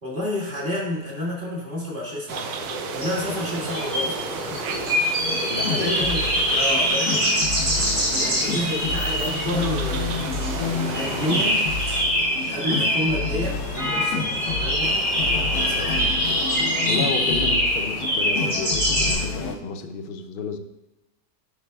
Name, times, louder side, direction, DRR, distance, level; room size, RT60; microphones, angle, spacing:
voice 1, 0.0-2.6 2.9-4.2 4.5-4.8 5.6-6.2 6.5-7.4 7.7-11.7 12.5-14.9 15.3-16.1, left 1 dB, 35° right, -5 dB, 2.1 m, -30 dB
sound 1, 2.3-19.1, equal, 60° right, 3.0 m, -25 dB
sound 2, 2.3-12.0, right 7 dB, 85° right, 1.1 m, -35 dB
sound 3, 4.9-19.6, left 4 dB, 85° left, 1.1 m, -30 dB
voice 2, 5.5-6.0 16.9-20.6, left 5 dB, 65° left, 6 dB, 0.5 m, -31 dB
10.5 x 5.2 x 2.3 m, 0.98 s
omnidirectional pair, 1.6 m